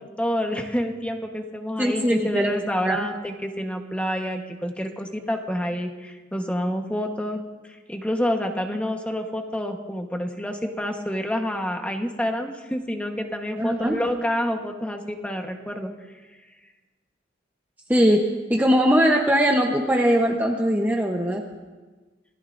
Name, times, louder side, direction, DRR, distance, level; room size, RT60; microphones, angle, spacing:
voice 1, 0.0-7.4 7.9-15.9, equal, 5° left, 3 dB, 1.2 m, -28 dB
voice 2, 1.8-3.1 13.6-14.0 17.9-21.4, equal, 10° right, 0 dB, 0.9 m, -21 dB
27.0 x 18.5 x 2.6 m, 1.3 s
head